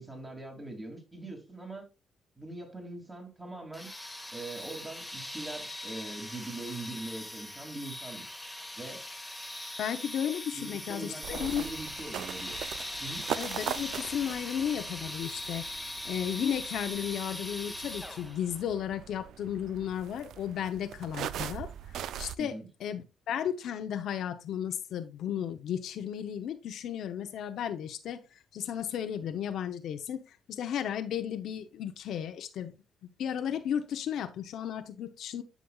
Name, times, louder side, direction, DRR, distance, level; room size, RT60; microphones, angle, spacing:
voice 1, 0.0-1.9 2.4-3.9 4.3-8.3 8.8-9.1 10.5-12.6 13.0-13.3 22.4-22.7, right 2 dB, 20° right, 2.5 m, -42 dB
sound 1, 3.7-18.5, left 1 dB, 5° left, 1.1 m, -40 dB
voice 2, 9.8-11.6 13.4-15.7 16.0-22.5 22.8-28.2 28.5-30.2 30.5-32.7 33.2-35.4, left 9 dB, 75° left, 0.7 m, -34 dB
sound 2, 11.2-22.4, right 10 dB, 75° right, 0.3 m, -41 dB
11.0 x 5.2 x 2.3 m
cardioid pair, 90°, 0 cm